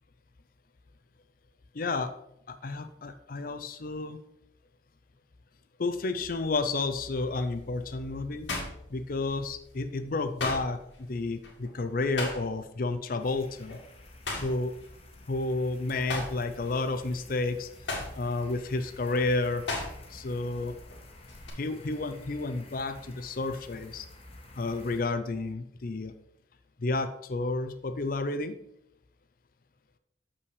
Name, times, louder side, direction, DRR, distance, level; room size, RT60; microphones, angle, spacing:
voice 1, 1.7-2.1 2.5-4.2 5.8-8.5 8.9-13.8 14.4-14.7 15.3-17.7 18.1-19.6 20.1-20.7 21.6-24.1 24.5-26.1 26.8-28.5, left 3 dB, 50° left, 9 dB, 0.5 m, -31 dB
sound 1, 6.2-6.6 7.1-9.6 9.9-12.8 13.1-13.3 13.7-15.6 15.9-20.3 20.6-21.5, left 2 dB, 85° left, 2.0 m, -37 dB
sound 2, 13.2-25.0, left 2 dB, 35° left, 1.2 m, -51 dB
7.0 x 5.6 x 4.8 m, 0.77 s
head